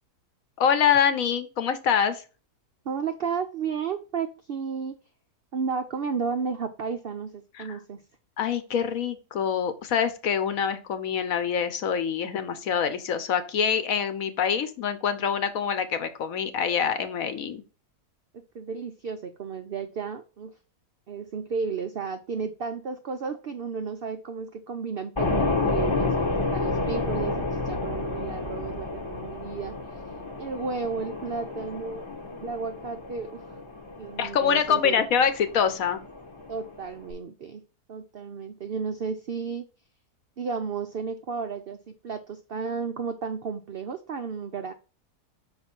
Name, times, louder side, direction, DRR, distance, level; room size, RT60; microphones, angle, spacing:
voice 1, 0.6-2.2 7.6-7.7 8.4-17.6 34.2-36.0, left 7 dB, 65° left, 11 dB, 1.1 m, -25 dB
voice 2, 2.8-5.0 5.5-8.0 18.3-20.5 21.1-29.8 30.4-33.4 34.0-35.0 36.5-37.6 37.9-39.7 40.4-44.7, right 5 dB, 80° right, 8 dB, 0.5 m, -33 dB
sound 1, 25.1-37.1, left 3 dB, 25° left, 0.8 m, -30 dB
5.6 x 4.4 x 4.3 m, 0.34 s
omnidirectional pair, 1.7 m